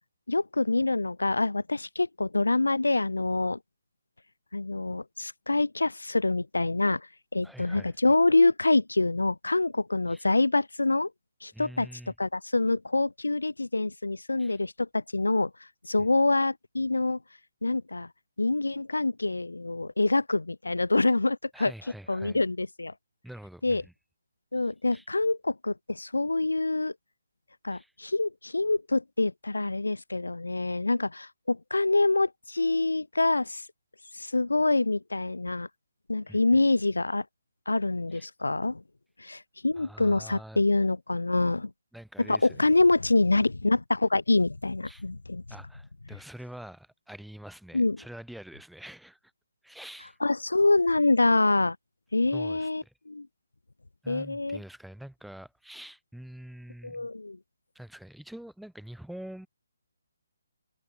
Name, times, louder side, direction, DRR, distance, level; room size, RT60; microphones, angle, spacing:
voice 1, 0.3-3.6 4.5-11.1 11.4-11.9 12.2-15.5 15.8-17.2 17.6-18.1 18.4-21.7 22.1-22.9 23.6-23.8 24.5-26.9 27.6-33.7 34.1-35.7 36.1-37.3 37.7-38.8 39.2-41.7 42.2-45.4 47.7-48.0 50.2-51.8 52.1-53.3 54.1-54.6 56.8-57.4, left 2 dB, 75° left, 0.4 m, -26 dB
voice 2, 7.4-7.9 10.1-10.2 11.5-12.1 14.4-14.6 21.5-22.4 23.2-23.9 24.9-25.0 27.7-27.9 36.3-36.4 38.1-38.3 39.8-40.6 41.9-42.6 44.9-45.0 45.5-49.2 49.6-50.2 52.3-52.9 54.0-57.1 57.7-59.5, right 1 dB, ahead, 4.7 m, -45 dB
figure-of-eight pair, 140°, 0 cm